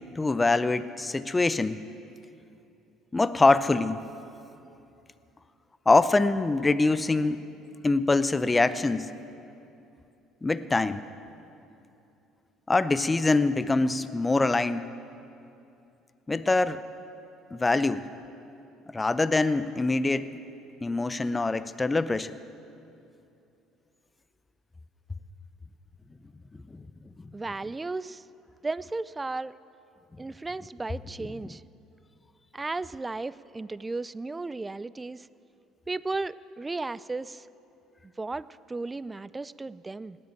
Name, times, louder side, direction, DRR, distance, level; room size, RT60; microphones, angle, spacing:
voice 1, 0.2-1.8 3.1-4.0 5.9-7.4 7.8-9.1 10.4-11.1 12.7-14.9 16.3-16.8 17.5-18.0 18.9-20.3 20.8-22.3, left 3 dB, 20° left, 14 dB, 0.6 m, -24 dB
voice 2, 27.3-28.2 28.6-29.5 30.2-31.6 32.5-35.3 35.9-37.5 38.2-40.2, right 3 dB, 20° right, 19 dB, 0.4 m, -34 dB
18.5 x 7.8 x 8.8 m, 2.7 s
hypercardioid pair, 60°, 0 cm